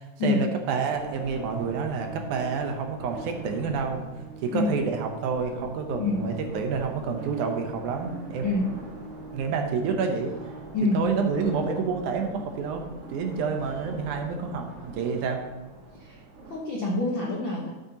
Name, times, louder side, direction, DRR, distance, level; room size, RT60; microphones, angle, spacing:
voice 1, 0.0-4.0 4.4-8.5 9.3-10.3 10.9-12.8 13.1-15.4, right 5 dB, 75° right, 4 dB, 2.2 m, -28 dB
sound 1, 0.9-16.6, right 2 dB, 55° right, 2.1 m, -43 dB
Organ, 1.2-12.2, right 3 dB, 25° right, 2.2 m, -45 dB
voice 2, 16.5-17.7, left 2 dB, 65° left, -3 dB, 1.1 m, -26 dB
12.5 x 8.3 x 2.9 m, 1.1 s
omnidirectional pair, 3.8 m